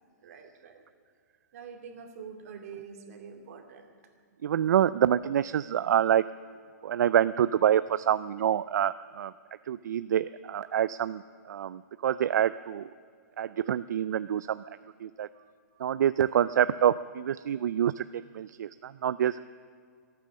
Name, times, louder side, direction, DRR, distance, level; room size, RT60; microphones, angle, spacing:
voice 1, 0.2-0.8 1.5-3.9 15.3-15.5 15.7-15.8, right 6 dB, 55° right, 4 dB, 2.5 m, -46 dB
voice 2, 4.4-6.2 6.8-9.3 9.7-11.2 11.5-12.9 13.4-14.6 15.0-15.3 15.8-19.4, right 10 dB, 75° right, 15 dB, 0.4 m, -26 dB
25.0 x 9.2 x 6.4 m, 2.2 s
hypercardioid pair, 155°, 10 cm